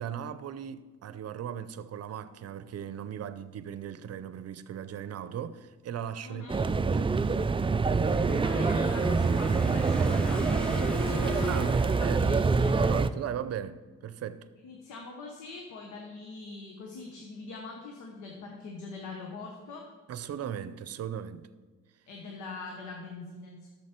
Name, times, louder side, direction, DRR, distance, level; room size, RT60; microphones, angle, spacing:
voice 1, 0.0-6.5 6.8-7.1 11.5-12.3 12.8-14.5 20.1-21.5, right 9 dB, 60° right, 0.7 m, -38 dB
voice 2, 6.2-6.7 8.4-13.0 14.6-19.9 22.1-23.7, left 3 dB, 85° left, 1.3 m, -43 dB
sound 1, 6.5-13.1, right 4 dB, 20° right, 0.4 m, -26 dB
sound 2, 8.0-12.9, equal, 5° left, 0.8 m, -46 dB
Bowed string instrument, 8.6-11.8, left 8 dB, 65° left, 1.6 m, -42 dB
11.0 x 7.4 x 4.5 m
supercardioid pair, 65°, 29 cm